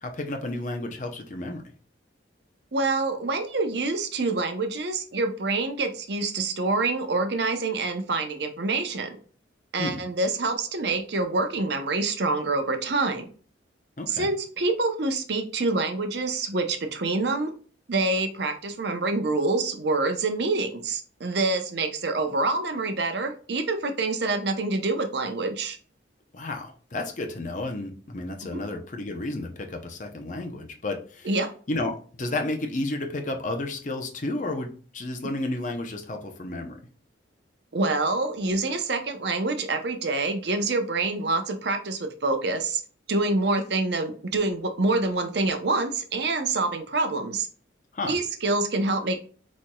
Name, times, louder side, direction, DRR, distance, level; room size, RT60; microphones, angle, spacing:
voice 1, 0.0-1.6 9.8-10.0 14.0-14.3 26.3-31.3 31.7-36.8 47.9-48.2, left 2 dB, 40° left, 4 dB, 0.7 m, -32 dB
voice 2, 2.7-9.1 9.7-13.2 14.1-17.5 17.9-25.8 28.5-28.6 31.2-31.5 37.7-42.8 43.1-47.5 48.1-49.2, right 3 dB, 60° right, 6 dB, 0.7 m, -26 dB
4.7 x 4.2 x 2.3 m, 0.42 s
head